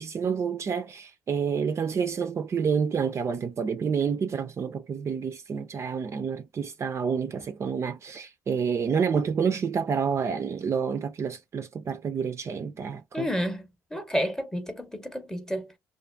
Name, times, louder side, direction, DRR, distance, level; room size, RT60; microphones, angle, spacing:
voice 1, 0.0-13.3, right 6 dB, 40° right, 0.4 m, -28 dB
voice 2, 13.1-15.7, equal, 5° left, 0.8 m, -30 dB
2.5 x 2.3 x 2.4 m
supercardioid pair, 70°, 7 cm